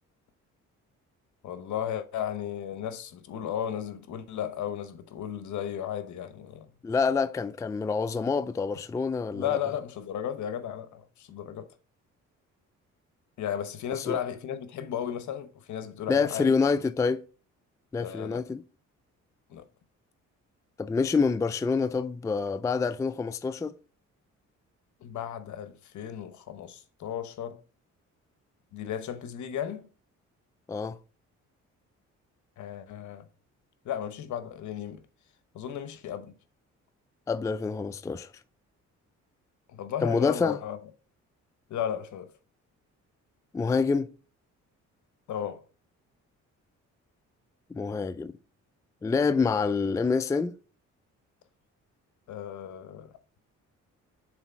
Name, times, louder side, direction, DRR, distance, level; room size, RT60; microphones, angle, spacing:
voice 1, 1.4-6.7 9.3-11.7 13.4-16.6 18.0-18.4 19.5-19.6 25.0-27.6 28.7-29.9 32.6-33.2 33.8-35.0 35.5-36.3 39.7-40.8 41.7-42.3 45.3-45.6 52.3-53.1, left 9 dB, 70° left, 0.9 m, -34 dB
voice 2, 6.8-9.6 13.9-14.2 16.1-17.2 17.9-18.6 20.8-23.7 30.7-31.0 37.3-38.3 40.0-40.6 43.5-44.1 47.7-48.3 49.0-50.5, left 4 dB, 10° left, 0.3 m, -27 dB
6.3 x 4.0 x 4.5 m
cardioid pair, 90°, 30 cm